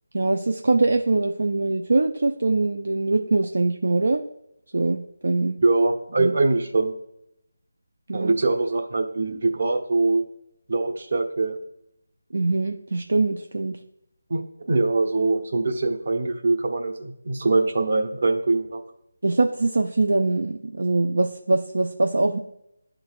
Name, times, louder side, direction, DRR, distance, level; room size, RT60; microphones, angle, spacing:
voice 1, 0.1-4.2 4.7-5.6 6.2-6.3 8.1-8.3 12.3-13.8 19.2-22.4, right 2 dB, 70° right, 5 dB, 0.5 m, -23 dB
voice 2, 5.6-6.9 8.1-10.3 10.7-11.6 14.3-14.4 14.7-18.8, right 3 dB, 55° right, 4 dB, 1.0 m, -23 dB
11.0 x 3.9 x 2.4 m, 0.78 s
figure-of-eight pair, 160°, 0 cm